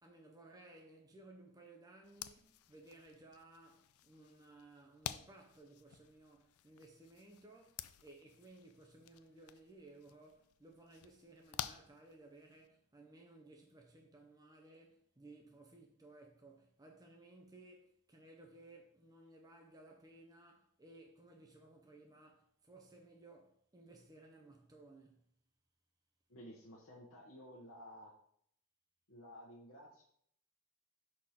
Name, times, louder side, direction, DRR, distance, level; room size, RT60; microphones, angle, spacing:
voice 1, 0.0-25.3, right 2 dB, 15° right, 0.6 m, -59 dB
sound 1, 2.0-12.7, left 11 dB, 80° left, 0.4 m, -51 dB
voice 2, 26.3-28.1 29.1-30.0, equal, 65° left, 1.1 m, -54 dB
4.9 x 4.3 x 5.7 m
head